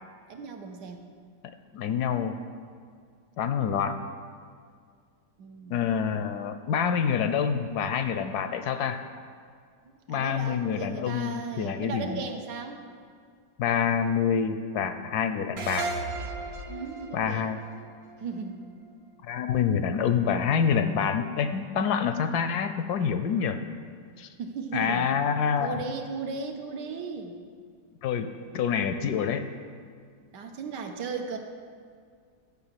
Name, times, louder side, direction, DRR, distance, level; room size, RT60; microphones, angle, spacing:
voice 1, 0.3-1.1 5.4-5.8 10.1-12.8 16.7-17.5 18.2-18.7 24.4-25.1 25.6-27.3 30.3-31.4, right 5 dB, 70° right, 5 dB, 1.5 m, -36 dB
voice 2, 1.7-2.4 3.4-4.0 5.7-9.0 10.1-12.2 13.6-15.9 17.1-17.6 19.2-23.6 24.2-24.3 24.7-25.8 28.0-29.5, left 7 dB, 70° left, 9 dB, 1.0 m, -27 dB
sound 1, 15.6-18.9, right 3 dB, 55° right, 0.7 m, -36 dB
12.0 x 5.9 x 7.4 m, 2.1 s
omnidirectional pair, 2.0 m